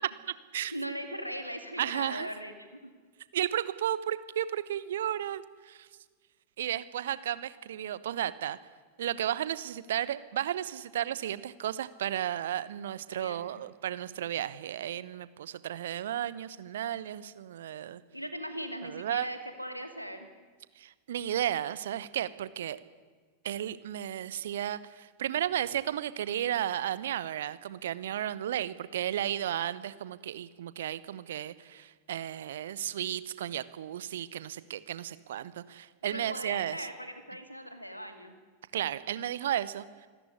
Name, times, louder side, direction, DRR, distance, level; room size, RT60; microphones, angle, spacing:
voice 1, 0.7-2.9 13.1-13.6 18.1-20.3 36.0-38.4, equal, 90° left, 8 dB, 2.5 m, -39 dB
voice 2, 1.8-2.3 3.3-5.9 6.6-8.6 9.0-18.0 18.8-19.3 20.8-22.8 23.4-36.9 38.7-39.8, right 11 dB, 60° right, 16 dB, 1.0 m, -33 dB
26.0 x 13.5 x 9.7 m, 1.5 s
figure-of-eight pair, 90°, 0 cm